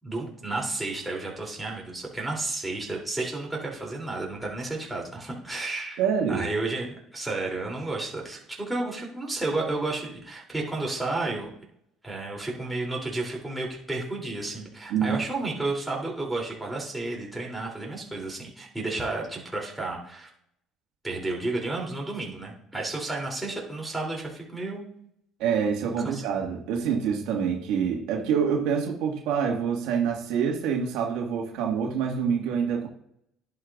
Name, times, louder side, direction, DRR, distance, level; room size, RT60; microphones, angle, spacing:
voice 1, 0.0-6.0 6.3-11.5 12.0-20.3 21.0-24.8 26.0-26.2, right 2 dB, 5° right, -2 dB, 3.1 m, -32 dB
voice 2, 6.0-6.5 14.9-15.2 25.4-32.9, right 7 dB, 80° right, 0 dB, 1.8 m, -26 dB
11.0 x 8.7 x 2.5 m, 0.73 s
supercardioid pair, 100°, 0 cm